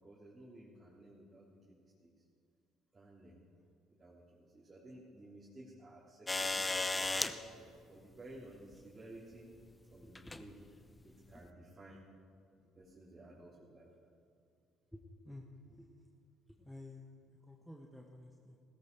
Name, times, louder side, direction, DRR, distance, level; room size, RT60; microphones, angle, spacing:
voice 1, 0.0-2.1 2.9-3.4 4.0-9.5 9.9-10.5 11.0-12.1 12.7-13.9, right 1 dB, 25° right, -7 dB, 3.1 m, -55 dB
sound 1, 6.3-7.3 8.7-8.8 10.1-10.4 11.4-11.5, left 3 dB, 20° left, 0.8 m, -34 dB
voice 2, 10.0-10.4 14.9-15.9 16.6-17.1 17.5-18.6, left 1 dB, ahead, 1 dB, 1.3 m, -52 dB
16.5 x 14.0 x 4.6 m, 2.4 s
hypercardioid pair, 60°, 0 cm